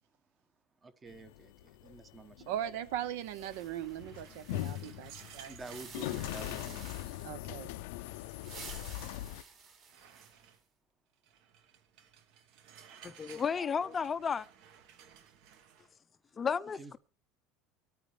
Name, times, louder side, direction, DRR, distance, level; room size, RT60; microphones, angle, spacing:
voice 1, 0.8-2.5 5.4-6.9 9.4-9.5 16.7-17.0, right 3 dB, 15° right, 0.9 m, -49 dB
sound 1, 1.1-9.4, left 15 dB, 80° left, 0.5 m, -41 dB
voice 2, 2.5-5.5 7.2-7.7, right 11 dB, 80° right, 0.8 m, -39 dB
sound 2, 3.2-7.4 8.2-10.5, right 5 dB, 40° right, 3.1 m, -52 dB
sound 3, 3.5-6.0 6.8-7.0 7.5-7.6 8.0-9.2 9.9-10.6 11.2-15.9, right 8 dB, 60° right, 1.2 m, -56 dB
voice 3, 13.0-14.5 16.4-17.0, left 6 dB, 20° left, 0.5 m, -33 dB
24.5 x 9.1 x 3.2 m
cardioid pair, 165°, 0 cm